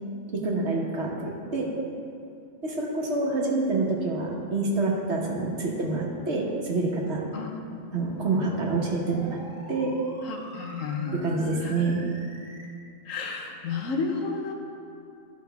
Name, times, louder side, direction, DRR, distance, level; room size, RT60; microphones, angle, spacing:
voice 1, 0.3-1.7 2.6-7.2 7.9-9.4 9.7-9.9 11.1-12.0, right 3 dB, 60° right, -1 dB, 1.4 m, -27 dB
voice 2, 7.3-7.8 10.3-11.3 11.6-11.8 13.1-14.5, left 4 dB, 75° left, 3 dB, 1.3 m, -32 dB
sound 1, 7.6-12.6, right 1 dB, 80° right, 1.6 m, -46 dB
13.5 x 5.4 x 3.4 m, 2.5 s
omnidirectional pair, 1.4 m